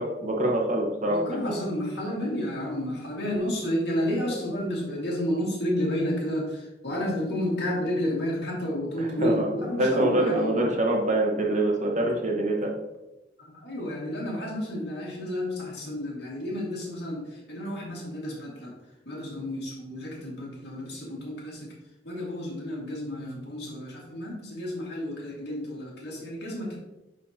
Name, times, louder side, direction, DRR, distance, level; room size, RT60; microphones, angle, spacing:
voice 1, 0.0-1.5 9.0-9.5 9.8-12.7, right 1 dB, 40° right, 0 dB, 1.2 m, -25 dB
voice 2, 1.1-10.6 13.4-18.8 19.0-21.7 22.0-26.8, equal, 65° left, -3 dB, 2.1 m, -31 dB
9.8 x 3.9 x 2.9 m, 0.98 s
head